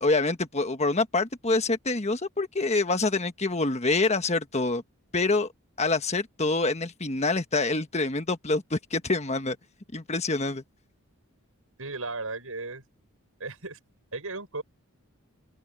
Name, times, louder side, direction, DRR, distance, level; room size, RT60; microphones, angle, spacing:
voice 1, 0.0-4.8 5.1-5.5 5.8-9.6 9.9-10.6, left 3 dB, 30° left, 1.4 m, -26 dB
voice 2, 11.8-12.8 13.4-13.8 14.1-14.6, right 3 dB, 70° right, 6.5 m, -35 dB
open air
head